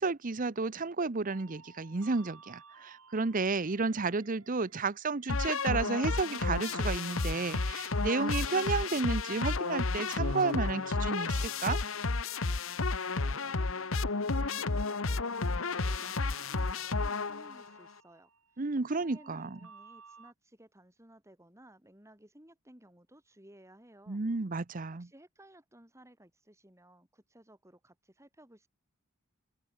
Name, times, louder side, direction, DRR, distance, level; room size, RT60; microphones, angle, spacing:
voice 1, 0.0-11.8 18.6-19.6 24.1-25.1, right 4 dB, 40° right, 0.7 m, -32 dB
sound 1, 1.3-20.3, right 5 dB, 85° right, 4.3 m, -56 dB
sound 2, 5.3-17.7, left 3 dB, 70° left, 1.2 m, -32 dB
voice 2, 13.1-18.6 18.9-24.2 24.9-28.7, right 1 dB, 15° right, 4.8 m, -58 dB
open air
head